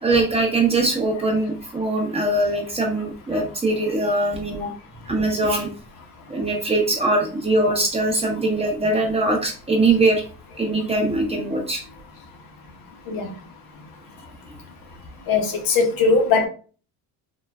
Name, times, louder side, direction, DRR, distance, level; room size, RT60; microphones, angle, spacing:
voice 1, 0.0-4.7 5.1-5.7 6.3-10.2 10.6-11.8, right 2 dB, 15° right, 0.7 m, -21 dB
voice 2, 15.3-16.5, left 4 dB, 65° left, 0.7 m, -20 dB
3.7 x 2.1 x 2.2 m
cardioid pair, 135°, 38 cm